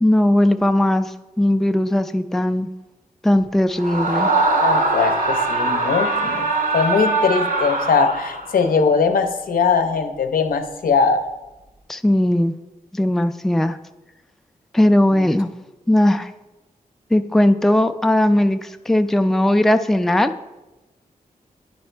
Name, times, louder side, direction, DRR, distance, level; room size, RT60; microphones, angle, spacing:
voice 1, 0.0-2.7 3.2-4.3 11.9-12.5 12.9-13.8 14.7-15.5 15.9-16.3 17.1-20.3, left 1 dB, ahead, 8 dB, 0.3 m, -18 dB
Screaming, 3.8-8.6, right 3 dB, 75° right, 0.9 m, -21 dB
voice 2, 4.6-6.5 6.7-11.2 15.1-15.3, left 5 dB, 85° left, 6 dB, 0.6 m, -20 dB
9.4 x 4.0 x 4.4 m, 1.1 s
cardioid pair, 65°, 14 cm